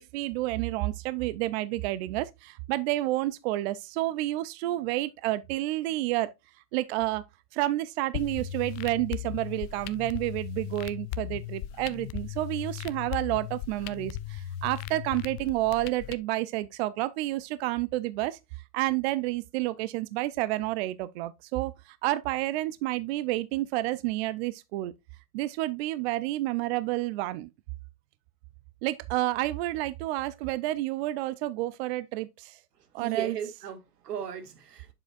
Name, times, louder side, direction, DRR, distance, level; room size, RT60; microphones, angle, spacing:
voice 1, 0.0-6.3 6.7-7.2 7.5-18.4 18.7-24.9 25.3-27.5 28.8-32.6 32.9-33.4, right 17 dB, 45° right, 0.5 m, -30 dB
sound 1, 8.1-16.1, left 13 dB, 30° left, 0.4 m, -37 dB
voice 2, 32.9-34.9, right 8 dB, 80° right, 1.9 m, -36 dB
7.9 x 7.0 x 2.4 m
hypercardioid pair, 105°, 47 cm